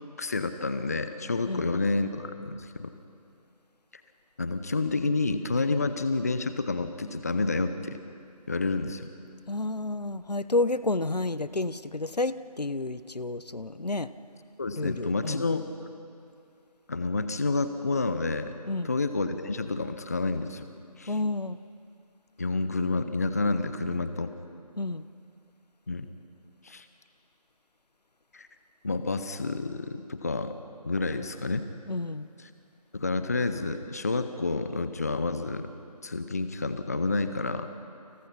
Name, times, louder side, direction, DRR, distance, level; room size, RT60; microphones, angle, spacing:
voice 1, 0.2-2.9 4.4-8.0 8.5-9.1 14.6-15.7 16.9-18.5 18.8-20.6 21.0-21.1 22.4-24.3 25.9-26.1 26.6-26.8 28.3-28.5 28.8-30.5 30.8-31.7 32.4-32.5 32.9-35.7 36.0-37.7, left 3 dB, 25° left, 10 dB, 0.8 m, -29 dB
voice 2, 9.5-14.1 14.8-15.4 18.7-18.9 21.1-21.6 24.8-25.0 31.9-32.3, left 2 dB, 80° left, 14 dB, 1.2 m, -30 dB
30.0 x 29.0 x 5.8 m, 2.4 s
figure-of-eight pair, 165°, 20 cm